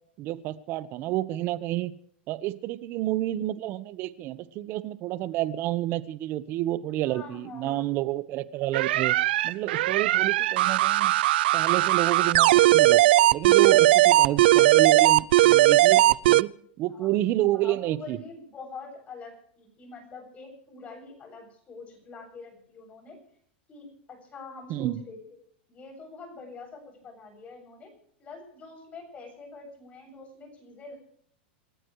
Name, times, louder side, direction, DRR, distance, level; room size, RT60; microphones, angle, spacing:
voice 1, 0.2-1.9 2.3-9.1 9.4-11.1 11.5-13.0 13.3-16.5 16.8-18.2 24.7-25.0, right 15 dB, 40° right, 15 dB, 1.2 m, -29 dB
voice 2, 7.0-7.9 16.9-17.1 17.5-23.2 23.7-25.2 25.7-27.9 28.2-31.0, left 4 dB, 25° left, 5 dB, 7.7 m, -45 dB
sound 1, 8.7-16.4, right 15 dB, 70° right, 0.6 m, -19 dB
28.0 x 14.5 x 3.3 m, 0.63 s
supercardioid pair, 140°, 6 cm